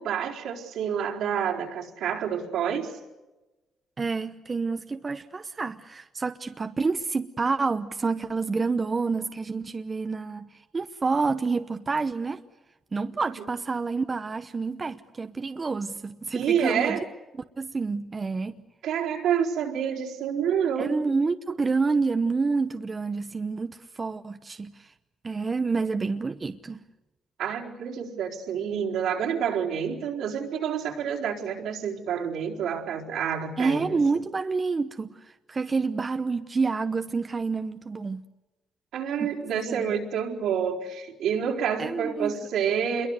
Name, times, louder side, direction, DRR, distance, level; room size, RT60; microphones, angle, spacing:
voice 1, 0.0-2.9 16.3-17.0 18.8-21.0 27.4-34.0 38.9-43.1, right 8 dB, 85° right, 4.3 m, -28 dB
voice 2, 4.0-12.4 12.9-17.0 17.6-18.5 20.8-24.9 25.2-26.8 33.6-38.2 39.2-39.3 39.7-40.0 41.8-42.4, right 4 dB, 30° right, 0.9 m, -28 dB
27.0 x 22.5 x 8.1 m
cardioid pair, 90°, 0 cm